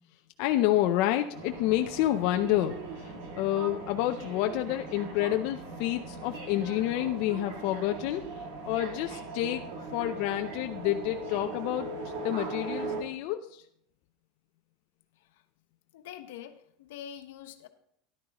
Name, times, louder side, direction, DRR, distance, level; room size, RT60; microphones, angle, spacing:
voice 1, 0.4-9.6 9.9-11.9 12.2-13.6, left 13 dB, 55° left, 6 dB, 0.5 m, -29 dB
sound 1, 1.3-13.0, right 3 dB, 75° right, 2.3 m, -40 dB
voice 2, 15.9-17.7, left 10 dB, 85° left, 7 dB, 1.1 m, -45 dB
13.5 x 11.0 x 3.0 m, 0.73 s
supercardioid pair, 150°, 0 cm